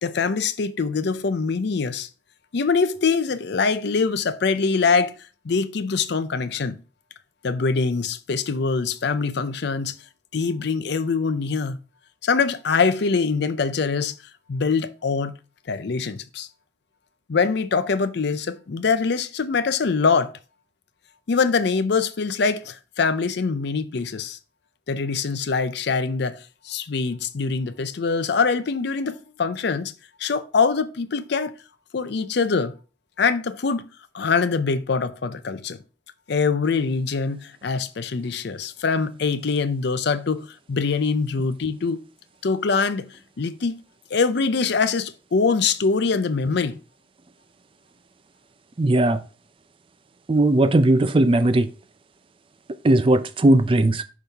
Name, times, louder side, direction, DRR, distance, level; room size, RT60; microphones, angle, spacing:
voice 1, 0.0-2.1 2.5-5.1 5.4-6.8 7.4-10.0 10.3-11.8 12.2-14.1 14.5-15.3 15.7-16.5 17.3-20.3 21.3-24.4 24.9-29.9 30.2-31.5 31.9-32.7 33.2-33.9 34.1-35.8 36.3-42.0 42.4-43.8 44.1-46.8, left 4 dB, 60° left, 0.5 m, -23 dB
voice 2, 48.8-49.2 50.3-51.7 52.8-54.0, right 1 dB, 25° right, 0.4 m, -18 dB
5.9 x 5.4 x 3.4 m
head